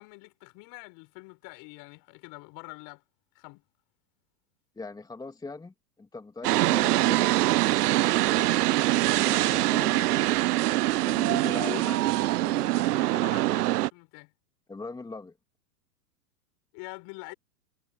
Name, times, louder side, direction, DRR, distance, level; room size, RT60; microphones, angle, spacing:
voice 1, 0.0-3.0 3.3-3.6 6.7-7.3 8.3-8.5 11.4-14.3 16.7-17.3, left 28 dB, 45° left, 6.3 m, -44 dB
voice 2, 4.8-5.7 6.0-7.2 9.1-10.3 11.1-12.0 14.7-15.3, left 3 dB, 10° left, 2.9 m, -40 dB
sound 1, 6.4-13.9, right 17 dB, 75° right, 0.5 m, -24 dB
hypercardioid pair, 120°, 47 cm